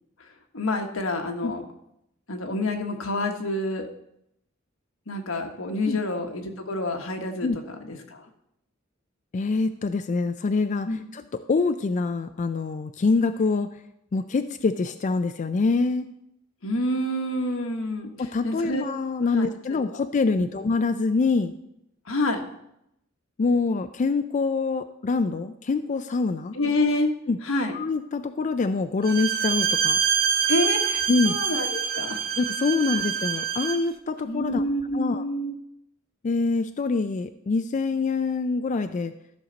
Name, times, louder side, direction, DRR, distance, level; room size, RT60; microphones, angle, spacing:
voice 1, 0.5-1.6 2.3-3.9 5.1-8.2 10.9-11.0 16.6-18.1 18.4-18.8 19.3-19.8 20.3-20.5 22.1-22.4 26.5-27.1 27.4-27.7 30.5-32.2 32.9-33.0 34.2-35.5, left 1 dB, 85° left, 4 dB, 1.3 m, -28 dB
voice 2, 9.3-10.9 11.1-13.7 14.1-16.1 18.2-21.5 23.4-26.5 27.3-27.4 27.7-30.0 31.1-31.4 32.4-34.6 34.9-35.2 36.2-39.1, left 4 dB, 35° left, 9 dB, 0.4 m, -25 dB
Bowed string instrument, 29.0-33.9, right 7 dB, 50° right, 0.7 m, -25 dB
13.5 x 6.5 x 3.9 m, 0.81 s
head